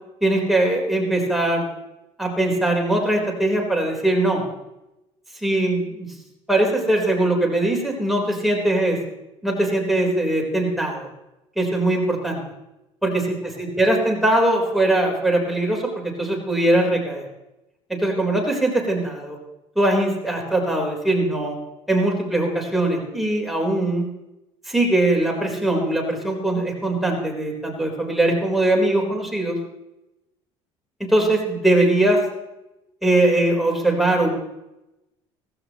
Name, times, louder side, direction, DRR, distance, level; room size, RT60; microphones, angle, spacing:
voice 1, 0.2-1.6 2.2-4.4 5.4-6.1 6.5-9.0 9.4-11.1 11.6-12.4 13.0-13.1 13.6-17.3 17.9-19.4 19.8-21.6 21.9-24.1 24.7-29.6 31.0-32.2 33.0-34.3, right 1 dB, ahead, -1 dB, 4.2 m, -21 dB
17.0 x 16.0 x 3.1 m, 0.94 s
supercardioid pair, 90°, 13 cm